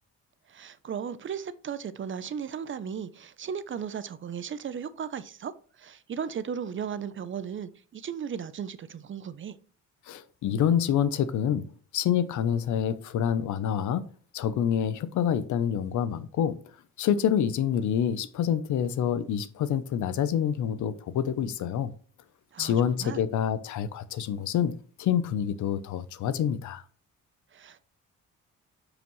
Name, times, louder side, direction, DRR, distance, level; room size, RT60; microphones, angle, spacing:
voice 1, 0.5-9.6 22.5-23.2 27.5-27.8, right 7 dB, 40° right, 0.6 m, -36 dB
voice 2, 10.1-11.6 11.9-14.0 14.3-16.6 17.0-21.9 22.6-26.8, left 9 dB, 75° left, 0.8 m, -27 dB
9.1 x 5.0 x 3.1 m
cardioid pair, 90°, 30 cm